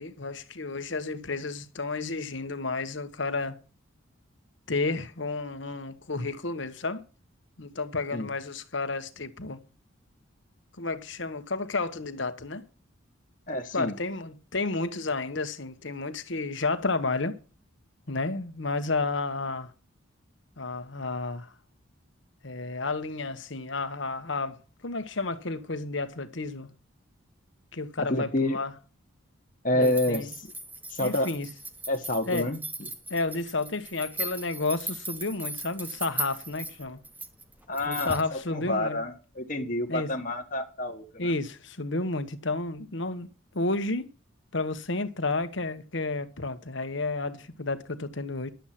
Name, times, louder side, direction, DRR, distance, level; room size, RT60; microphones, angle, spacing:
voice 1, 0.0-3.6 4.7-7.0 7.6-9.6 10.8-12.6 13.7-17.4 18.1-19.7 20.6-21.5 22.4-26.7 27.7-28.7 29.7-30.3 31.0-31.5 32.3-32.5 33.1-37.0 37.8-39.0 39.9-40.1 41.2-43.3 43.5-44.1 44.5-48.5, left 3 dB, 65° left, 1.3 m, -31 dB
voice 2, 13.5-13.9 28.0-28.6 29.6-30.5 30.9-31.3 31.9-32.6 37.7-41.3, left 1 dB, 40° left, 1.4 m, -28 dB
sound 1, 29.8-38.3, right 2 dB, 10° right, 1.2 m, -38 dB
11.5 x 8.0 x 5.9 m
head